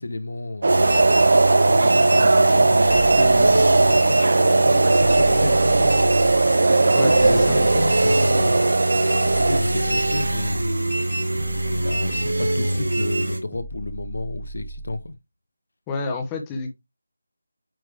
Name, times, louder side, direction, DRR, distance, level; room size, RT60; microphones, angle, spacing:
voice 1, 0.0-5.9 6.7-8.8 9.3-11.0 11.7-15.2, left 2 dB, 75° left, 1.0 m, -31 dB
sound 1, 0.6-9.6, right 3 dB, 60° right, 0.5 m, -18 dB
sound 2, 0.7-13.4, right 1 dB, 80° right, 1.8 m, -23 dB
voice 2, 6.9-7.6 15.9-16.8, left 3 dB, 15° left, 1.1 m, -29 dB
sound 3, 13.5-15.1, right 2 dB, 5° right, 0.8 m, -39 dB
9.1 x 3.3 x 3.5 m
figure-of-eight pair, 165°, 0 cm